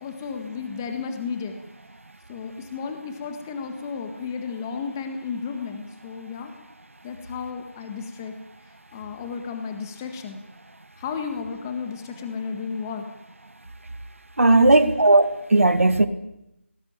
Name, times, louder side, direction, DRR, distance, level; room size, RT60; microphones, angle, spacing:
voice 1, 0.0-1.5 2.3-6.5 7.0-8.3 8.9-10.4 11.0-13.0 14.5-14.9, left 5 dB, 15° left, 6 dB, 1.6 m, -33 dB
voice 2, 14.4-16.1, right 2 dB, 80° right, 11 dB, 2.3 m, -16 dB
21.5 x 19.5 x 8.9 m, 0.87 s
figure-of-eight pair, 170°, 7 cm